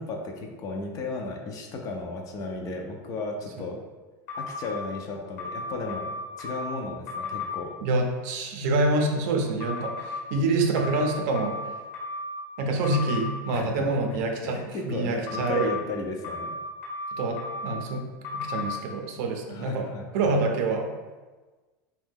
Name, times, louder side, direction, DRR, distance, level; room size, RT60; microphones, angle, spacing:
voice 1, 0.0-3.8 4.3-6.1 6.4-7.7 13.5-14.0 14.4-16.5 19.5-20.4, left 3 dB, 35° left, 2 dB, 0.4 m, -34 dB
sound 1, 4.3-4.8 5.4-6.7 7.1-7.5 9.6-10.1 10.8-12.4 12.8-13.3 15.3-15.7 16.2-17.8 18.2-18.7, left 3 dB, 70° left, 1.0 m, -34 dB
voice 2, 7.8-11.6 12.6-15.7 17.2-19.9 20.1-20.9, right 2 dB, 70° right, 3 dB, 0.5 m, -26 dB
2.6 x 2.2 x 3.5 m, 1.3 s
supercardioid pair, 130°, 10 cm